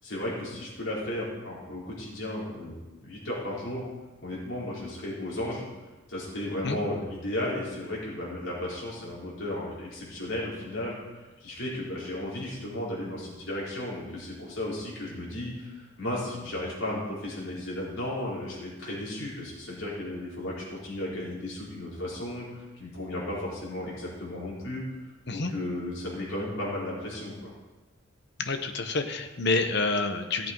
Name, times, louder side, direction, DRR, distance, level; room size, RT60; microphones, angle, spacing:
voice 1, 0.0-3.8 4.2-5.6 6.1-24.8 25.3-27.5, left 1 dB, 85° left, -6 dB, 5.1 m, -34 dB
voice 2, 28.5-30.5, left 3 dB, 60° left, 7 dB, 1.1 m, -28 dB
15.5 x 8.3 x 4.7 m, 1.2 s
head